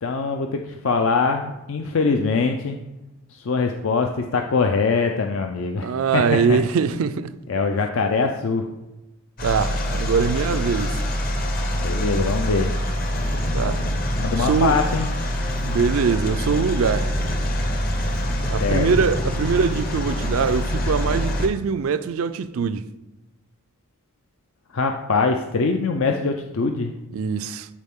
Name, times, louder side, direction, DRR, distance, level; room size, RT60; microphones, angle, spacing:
voice 1, 0.0-2.8 3.3-5.9 6.1-6.6 7.5-8.7 11.7-12.7 14.2-15.1 18.6-18.9 24.7-26.9, left 4 dB, 60° left, 0.5 m, -23 dB
voice 2, 5.8-7.4 9.4-11.0 13.5-13.9 14.4-14.8 15.6-17.1 18.4-22.9 27.1-27.7, right 5 dB, 70° right, 0.4 m, -23 dB
sound 1, 9.4-21.5, equal, 40° left, 1.0 m, -25 dB
12.0 x 4.1 x 3.6 m
head